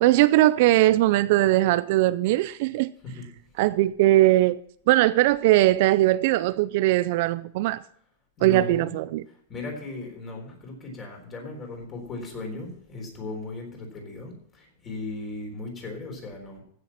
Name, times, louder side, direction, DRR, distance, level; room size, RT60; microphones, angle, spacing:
voice 1, 0.0-2.9 3.6-4.6 4.9-7.8 8.4-9.2, right 16 dB, 50° right, 0.4 m, -20 dB
voice 2, 8.4-16.6, left 3 dB, 20° left, 3.9 m, -37 dB
15.5 x 6.8 x 5.8 m
supercardioid pair, 165°, 0 cm